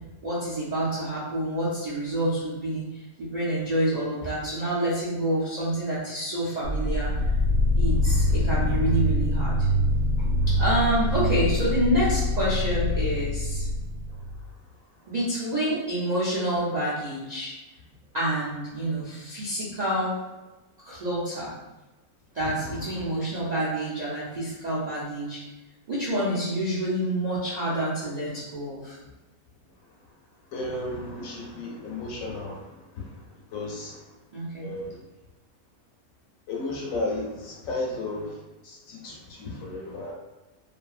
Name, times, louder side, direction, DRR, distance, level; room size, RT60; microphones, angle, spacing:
voice 1, 0.2-7.1 7.8-9.7 10.2-13.7 15.1-17.5 18.1-20.1 20.8-21.5 22.3-25.4 25.9-29.0 34.3-34.7, right 1 dB, 55° right, -10 dB, 0.4 m, -28 dB
sound 1, 6.6-14.5, left 1 dB, 80° right, 1.1 m, -24 dB
voice 2, 30.5-32.7 33.0-33.2 33.5-34.0 34.6-35.0 36.5-38.4 38.6-40.1, left 2 dB, 70° left, -2 dB, 0.9 m, -33 dB
2.7 x 2.6 x 2.3 m, 1.1 s
omnidirectional pair, 1.6 m